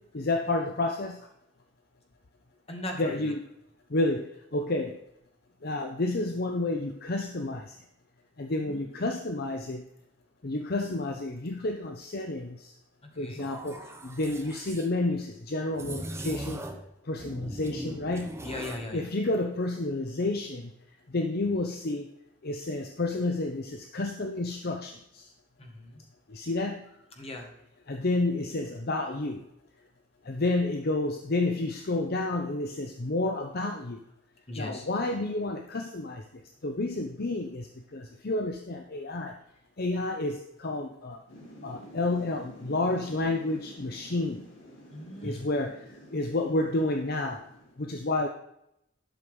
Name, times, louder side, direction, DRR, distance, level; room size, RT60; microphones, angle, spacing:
voice 1, 0.1-1.2 3.0-3.4 3.9-5.0 5.6-7.7 8.4-9.8 10.4-12.7 13.2-16.6 17.1-18.4 18.9-20.7 21.1-22.1 22.4-25.3 26.3-26.8 27.9-29.4 30.3-34.0 34.6-36.2 36.6-39.3 39.8-41.2 41.6-44.5 45.2-45.8 46.1-47.4 47.8-48.3, left 2 dB, 55° left, 4 dB, 0.8 m, -30 dB
voice 2, 2.7-3.3 8.6-9.1 13.0-13.4 18.4-19.1 25.6-26.0 27.2-27.5 34.5-34.9 44.9-45.5, left 1 dB, 30° left, 2 dB, 2.0 m, -39 dB
sound 1, 13.4-14.9 15.7-16.9 17.2-18.9, right 1 dB, 15° right, 1.0 m, -40 dB
Thunder / Rain, 41.3-47.7, equal, 85° left, 3.9 m, -49 dB
11.5 x 6.3 x 5.4 m, 0.79 s
head